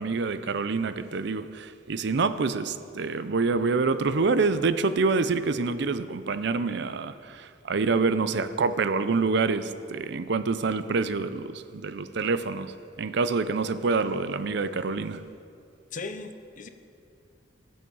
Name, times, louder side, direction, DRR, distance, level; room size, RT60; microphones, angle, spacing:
voice 1, 0.0-15.2, right 4 dB, 65° right, 12 dB, 0.5 m, -26 dB
voice 2, 15.9-16.7, left 3 dB, 45° left, 8 dB, 0.7 m, -37 dB
19.0 x 7.3 x 4.7 m, 2.5 s
head